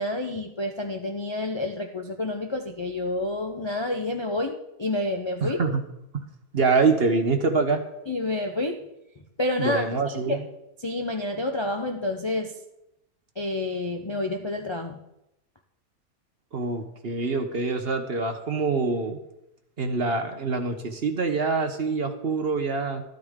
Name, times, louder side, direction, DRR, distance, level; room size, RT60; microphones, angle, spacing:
voice 1, 0.0-5.6 8.1-8.8 9.4-10.4 10.8-12.5 13.4-15.0, left 2 dB, 35° left, 3 dB, 0.4 m, -29 dB
voice 2, 5.4-5.8 6.1-6.2 6.5-7.8 9.6-10.4 16.5-19.2 19.8-23.0, right 4 dB, 45° right, 6 dB, 1.0 m, -25 dB
13.0 x 12.5 x 3.6 m, 0.87 s
omnidirectional pair, 1.7 m